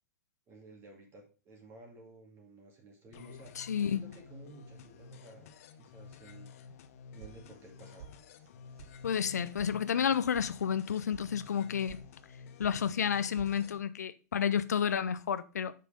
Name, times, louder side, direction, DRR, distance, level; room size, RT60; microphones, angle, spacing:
voice 1, 0.5-3.5 3.9-6.7 7.1-8.1, right 2 dB, 30° right, 2.4 m, -54 dB
sound 1, 3.1-13.8, left 6 dB, 60° left, 0.8 m, -52 dB
voice 2, 3.6-4.0 9.0-12.0 12.6-15.7, left 8 dB, 90° left, 0.5 m, -31 dB
sound 2, 7.2-7.7 8.0-8.5 8.8-8.9 9.2-9.7 10.0-10.5 10.8-11.2 11.6-12.0 12.3-12.8 13.0-13.5, right 8 dB, 65° right, 1.4 m, -51 dB
6.5 x 5.7 x 5.0 m
hypercardioid pair, 115°, 9 cm